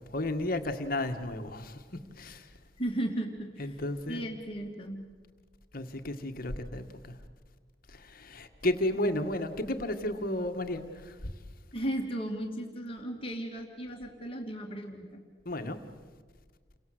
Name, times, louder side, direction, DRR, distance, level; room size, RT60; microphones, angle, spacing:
voice 1, 0.1-1.8 2.2-2.5 3.6-4.2 5.7-7.2 7.9-11.3 15.5-15.8, left 1 dB, 50° left, 1.9 m, -33 dB
voice 2, 2.8-3.8 4.1-5.0 9.0-9.1 11.7-15.1, right 1 dB, 30° left, 2.6 m, -35 dB
30.0 x 24.0 x 8.0 m
head